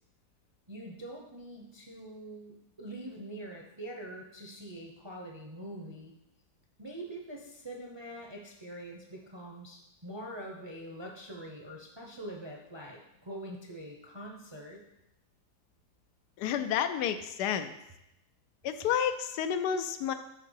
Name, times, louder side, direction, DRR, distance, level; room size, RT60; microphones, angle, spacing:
voice 1, 0.7-6.1 6.8-14.8, right 1 dB, 25° right, 0 dB, 0.5 m, -44 dB
voice 2, 16.4-17.8 18.6-20.1, left 8 dB, 85° left, 9 dB, 1.2 m, -30 dB
5.8 x 4.6 x 6.4 m, 0.86 s
omnidirectional pair, 1.7 m